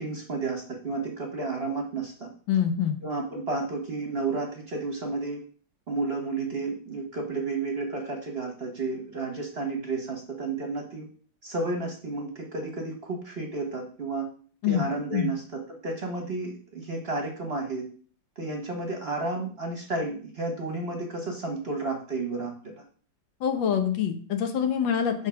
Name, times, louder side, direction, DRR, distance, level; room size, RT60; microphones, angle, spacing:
voice 1, 0.0-2.3 3.0-5.4 5.9-11.1 11.4-14.3 14.6-17.9 18.4-22.8, right 3 dB, 40° right, 2 dB, 1.0 m, -32 dB
voice 2, 2.5-3.0 14.6-14.8 15.1-15.3 23.4-25.3, left 8 dB, 80° left, 7 dB, 1.6 m, -25 dB
6.4 x 3.5 x 5.7 m, 0.43 s
omnidirectional pair, 2.0 m